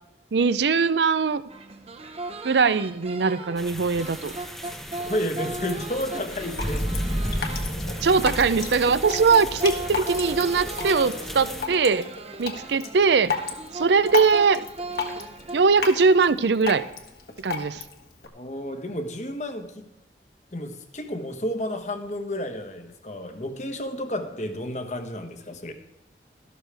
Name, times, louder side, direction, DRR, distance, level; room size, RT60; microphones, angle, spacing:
voice 1, 0.3-1.4 2.4-4.3 8.0-12.1 12.4-13.3 13.7-14.6 15.5-16.8 17.4-17.8, right 5 dB, 75° right, 14 dB, 0.5 m, -21 dB
sound 1, 1.5-15.6, right 2 dB, 35° right, 0.8 m, -38 dB
sound 2, 3.6-11.7, equal, ahead, 0.8 m, -33 dB
voice 2, 5.0-7.4 18.3-19.9 20.5-25.7, left 1 dB, 40° left, 6 dB, 1.1 m, -32 dB
Drip, 6.3-18.3, left 4 dB, 60° left, 1.5 m, -34 dB
13.0 x 12.5 x 3.4 m, 0.97 s
head